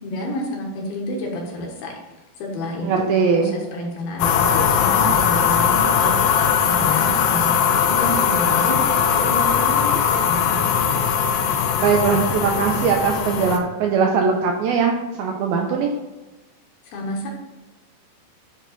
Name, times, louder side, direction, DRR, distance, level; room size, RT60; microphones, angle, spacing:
voice 1, 0.0-1.9 2.4-8.8 9.0-10.9 16.8-17.3, left 1 dB, 70° left, 0 dB, 2.8 m, -29 dB
voice 2, 2.8-3.6 11.8-14.9 15.2-15.9, right 5 dB, 80° right, 1 dB, 2.2 m, -20 dB
sound 1, 4.2-13.6, left 7 dB, 85° left, 2.9 m, -19 dB
9.9 x 3.7 x 4.0 m, 1.1 s
omnidirectional pair, 4.9 m